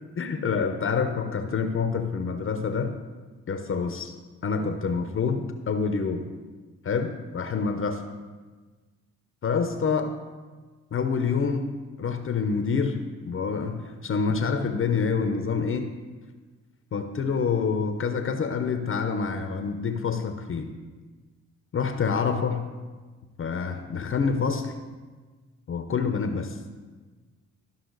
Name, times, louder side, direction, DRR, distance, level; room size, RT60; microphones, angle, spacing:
voice 1, 0.2-3.0 3.5-4.1 4.4-6.3 6.8-8.0 9.4-10.2 10.9-11.7 12.0-15.9 16.9-20.7 21.7-22.7 23.4-24.7 25.7-26.6, left 5 dB, 45° left, 7 dB, 0.8 m, -27 dB
13.0 x 5.5 x 4.0 m, 1.3 s
supercardioid pair, 70°, 30 cm